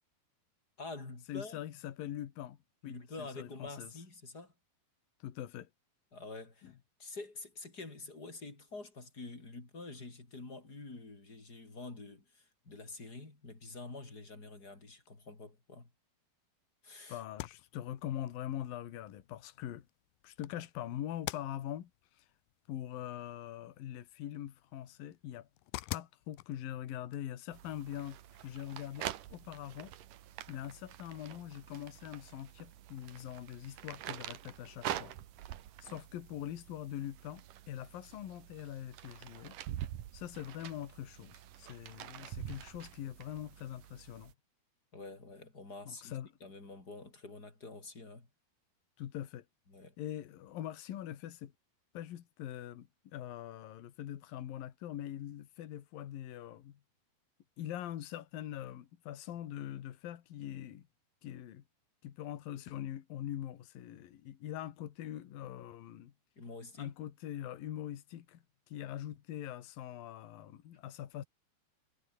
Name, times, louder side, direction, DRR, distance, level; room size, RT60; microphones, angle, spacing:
voice 1, 0.8-1.6 2.8-4.5 6.1-15.9 16.8-17.2 44.9-48.3 49.7-49.9 66.4-66.9, left 3 dB, 25° left, 4.9 m, -47 dB
voice 2, 1.3-2.6 2.8-3.9 5.2-5.7 6.6-6.7 17.1-19.9 20.2-21.9 22.2-22.3 22.7-25.5 25.9-29.9 30.5-35.1 35.8-39.6 40.1-44.3 45.9-46.3 49.0-49.4 50.0-51.5 51.9-56.8 57.6-60.9 61.2-61.6 62.0-66.1 66.8-71.2, left 11 dB, 65° left, 3.3 m, -43 dB
sound 1, 17.2-28.9, left 18 dB, 90° left, 2.0 m, -50 dB
sound 2, 27.5-44.3, right 12 dB, 60° right, 2.6 m, -46 dB
omnidirectional pair, 4.8 m